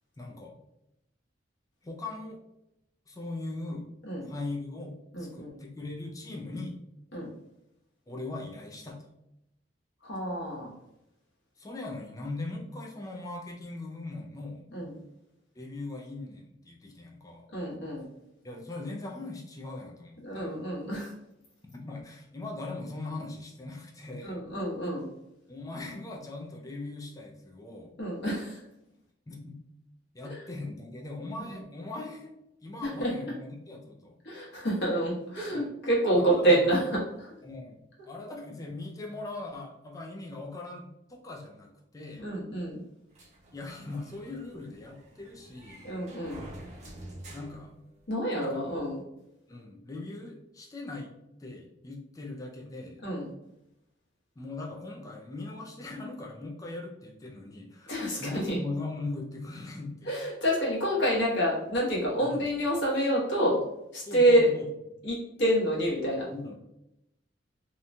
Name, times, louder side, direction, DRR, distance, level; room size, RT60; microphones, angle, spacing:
voice 1, 0.2-0.5 1.8-2.4 3.1-3.9 4.2-6.8 8.1-9.0 11.6-14.7 15.6-17.5 18.4-20.6 21.7-24.4 25.5-27.9 29.3-29.6 30.1-32.3 32.6-34.2 35.5-35.7 36.1-36.6 37.4-42.3 43.5-45.8 47.3-47.7 48.4-48.8 49.5-51.1 51.4-53.1 54.4-60.1 62.2-62.5 64.1-64.7 66.3-66.5, left 2 dB, 20° left, 0 dB, 0.3 m, -40 dB
voice 2, 5.1-5.6 7.1-7.3 10.0-10.7 14.7-15.0 17.5-18.1 20.2-21.1 24.2-25.1 28.0-28.6 30.3-30.4 32.8-33.1 34.2-37.3 42.2-42.8 45.8-46.4 48.1-49.0 53.0-53.3 57.9-58.6 60.1-63.6 63.9-64.5 65.0-66.3, right 1 dB, 65° left, -5 dB, 1.1 m, -27 dB
sound 1, 43.1-48.4, right 1 dB, 40° right, 0.6 m, -48 dB
2.9 x 2.2 x 2.6 m, 0.84 s
head